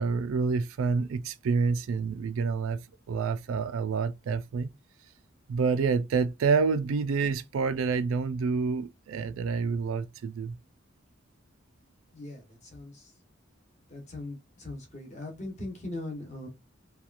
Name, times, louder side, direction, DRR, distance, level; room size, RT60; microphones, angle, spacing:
voice 1, 0.0-2.8 3.1-4.7 5.5-10.6, right 5 dB, 90° right, 0.4 m, -28 dB
voice 2, 12.1-13.1 13.9-16.5, left 2 dB, 35° left, 1.0 m, -40 dB
2.9 x 2.3 x 2.4 m
head